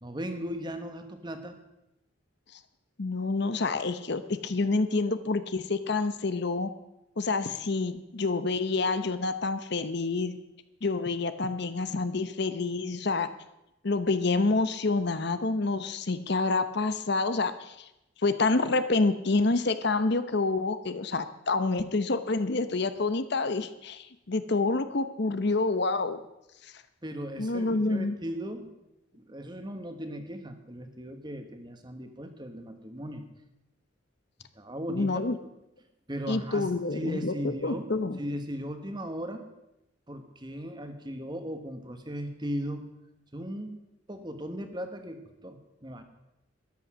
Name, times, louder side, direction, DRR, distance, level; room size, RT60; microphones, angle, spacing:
voice 1, 0.0-1.6 27.0-28.7 29.1-33.2 34.5-35.2 36.1-37.9 38.2-39.5 40.1-42.9 43.3-43.7 44.1-46.0, equal, 20° right, 7 dB, 1.3 m, -37 dB
voice 2, 3.0-6.7 7.2-10.3 10.8-13.3 13.8-17.9 18.2-26.2 26.6-26.7 27.4-28.2 34.9-35.4 36.3-37.3 37.6-38.2, left 3 dB, 55° left, 11 dB, 0.8 m, -28 dB
13.5 x 11.0 x 6.2 m, 0.89 s
head